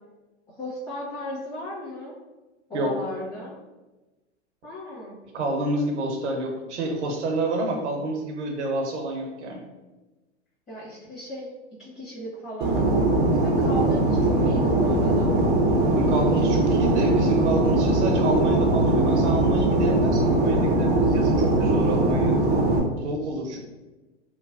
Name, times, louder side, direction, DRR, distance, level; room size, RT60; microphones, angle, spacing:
voice 1, 0.5-2.2 2.7-3.6 4.6-5.2 10.7-11.5 11.8-12.8 13.3-15.3 16.1-16.8, left 1 dB, 20° left, -13 dB, 1.3 m, -35 dB
voice 2, 5.3-9.6 15.9-22.4 23.0-23.6, right 1 dB, 70° right, 2 dB, 0.7 m, -28 dB
Fixed-wing aircraft airplane, 12.6-22.8, right 2 dB, 30° right, 0.5 m, -21 dB
3.1 x 2.1 x 2.4 m, 1.1 s
hypercardioid pair, 110°, 36 cm